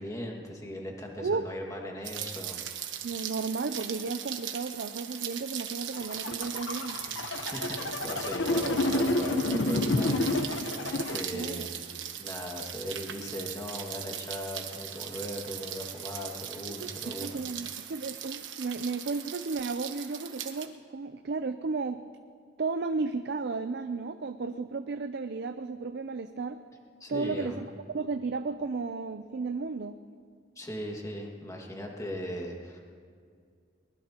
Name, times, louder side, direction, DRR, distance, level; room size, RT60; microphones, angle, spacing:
voice 1, 0.0-2.6 7.1-10.8 11.1-11.9 12.2-17.4 27.0-27.6 30.6-32.8, equal, 15° left, 0 dB, 2.0 m, -39 dB
voice 2, 1.2-1.5 3.0-7.0 8.5-9.1 10.0-10.5 11.3-11.7 16.8-22.0 22.6-26.6 27.1-27.7 27.9-30.0, right 4 dB, 60° right, 9 dB, 0.5 m, -34 dB
Rain, 2.0-20.7, right 9 dB, 90° right, 1.2 m, -39 dB
sound 1, 5.9-11.2, left 2 dB, 90° left, 1.0 m, -29 dB
22.5 x 20.0 x 2.9 m, 2.1 s
head